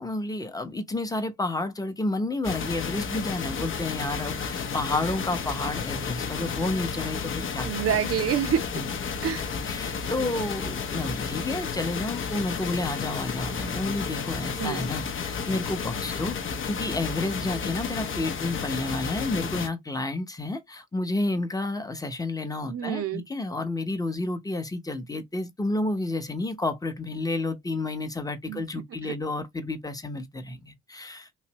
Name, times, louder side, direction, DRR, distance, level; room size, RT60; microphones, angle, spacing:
voice 1, 0.0-7.7 8.1-8.2 8.7-8.9 9.7-31.3, left 2 dB, 10° left, 0.8 m, -30 dB
sound 1, 2.4-19.7, left 6 dB, 40° left, 0.7 m, -32 dB
voice 2, 7.6-8.6 9.2-9.5 14.6-14.9 22.7-23.2 28.5-28.6, right 9 dB, 50° right, 0.7 m, -27 dB
3.2 x 2.6 x 2.9 m
cardioid pair, 90°, 30 cm